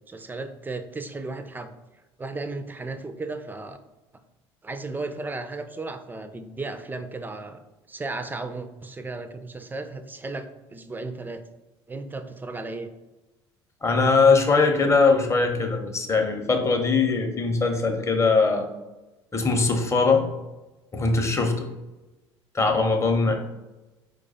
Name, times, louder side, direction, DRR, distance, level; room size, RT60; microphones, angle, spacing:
voice 1, 0.1-1.7 2.2-3.8 4.6-7.6 7.9-11.4 11.9-12.9 23.2-23.3, right 3 dB, 15° right, 9 dB, 0.4 m, -35 dB
voice 2, 13.8-18.7 19.3-20.3 20.9-21.7 22.5-23.3, left 4 dB, 20° left, 3 dB, 0.8 m, -21 dB
4.7 x 2.3 x 4.1 m, 1.1 s
figure-of-eight pair, 65°, 14 cm